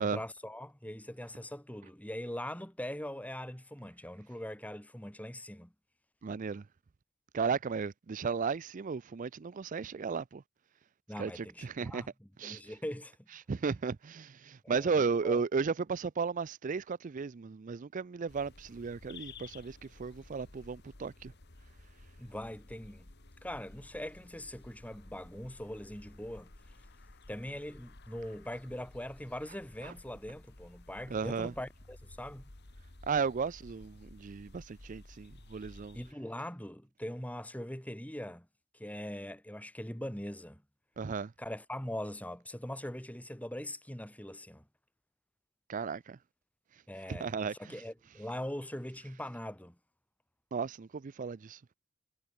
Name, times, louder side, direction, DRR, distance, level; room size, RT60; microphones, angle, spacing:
voice 1, 0.0-5.7 11.1-12.1 12.4-13.3 14.6-15.4 22.2-23.1 23.4-26.5 27.3-32.4 35.9-38.5 38.7-40.6 41.4-44.6 46.9-47.3 47.6-49.8, left 1 dB, 5° left, 2.9 m, -41 dB
voice 2, 6.2-6.7 7.3-10.4 11.2-12.0 12.4-12.6 13.3-21.3 29.8-29.9 31.1-31.5 33.0-36.0 41.0-41.3 45.7-46.2 46.7-47.8 50.5-51.6, right 5 dB, 40° right, 0.4 m, -35 dB
sound 1, 18.3-36.1, left 2 dB, 50° left, 1.8 m, -54 dB
head